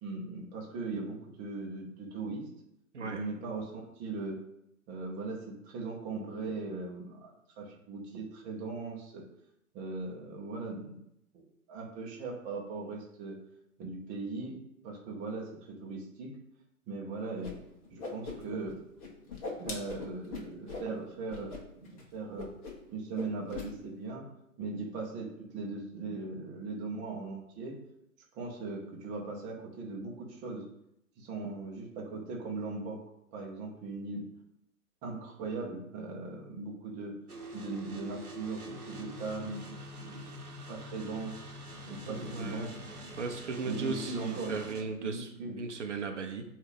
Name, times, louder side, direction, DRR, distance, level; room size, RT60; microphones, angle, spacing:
voice 1, 0.0-2.5 3.0-4.4 4.9-9.2 9.7-11.0 11.3-13.4 13.8-14.6 14.8-16.3 16.9-17.6 17.9-18.8 19.6-21.5 21.8-22.5 22.9-24.2 24.6-27.8 28.3-30.6 31.2-33.0 33.3-34.2 35.0-37.1 37.5-40.3 40.7-41.5 41.9-42.8 43.6-44.5 45.0-45.6, right 3 dB, 15° right, -1 dB, 1.0 m, -39 dB
Whoosh swoosh swish, 17.4-17.5 17.8-18.7 19.0-20.9 21.3-21.6 21.9-22.0 22.4-22.9 23.1-23.7, left 4 dB, 25° left, 1.1 m, -40 dB
sound 1, 37.3-44.8, equal, 85° right, 1.2 m, -45 dB
voice 2, 42.1-42.7 43.2-45.3 45.6-46.4, right 4 dB, 55° right, 4 dB, 0.9 m, -36 dB
8.0 x 2.8 x 5.3 m, 0.78 s
figure-of-eight pair, 120°, 43 cm